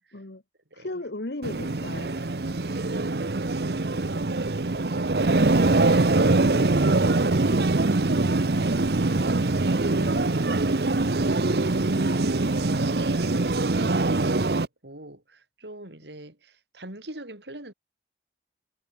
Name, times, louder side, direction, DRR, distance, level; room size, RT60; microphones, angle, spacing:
voice 1, 0.7-2.3 9.9-10.4, left 2 dB, 70° left, 1.6 m, -37 dB
sound 1, 1.4-14.7, right 2 dB, 65° right, 0.9 m, -23 dB
voice 2, 2.5-8.9 11.0-17.7, right 1 dB, 80° right, 5.1 m, -43 dB
head